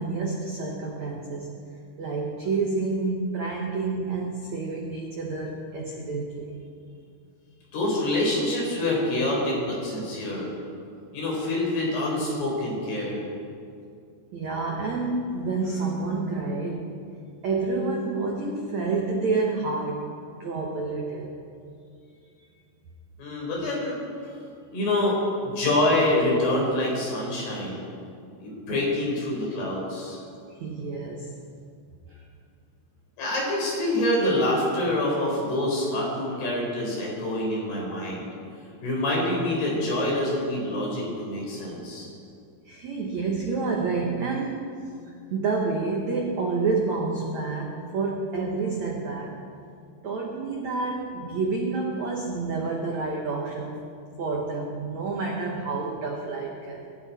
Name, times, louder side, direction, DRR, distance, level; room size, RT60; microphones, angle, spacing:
voice 1, 0.0-1.5 2.0-6.6 14.3-17.0 17.4-21.4 30.5-31.3 32.1-32.2 42.6-44.9 45.3-49.4 50.0-53.8 54.2-56.9, right 3 dB, 90° right, -1 dB, 1.5 m, -29 dB
voice 2, 7.7-10.5 11.1-13.2 23.2-24.0 24.7-25.2 25.4-27.8 28.4-30.2 33.2-38.3 38.8-42.1, left 1 dB, 55° left, -3 dB, 6.4 m, -26 dB
25.5 x 13.0 x 4.4 m, 2.4 s
omnidirectional pair, 5.6 m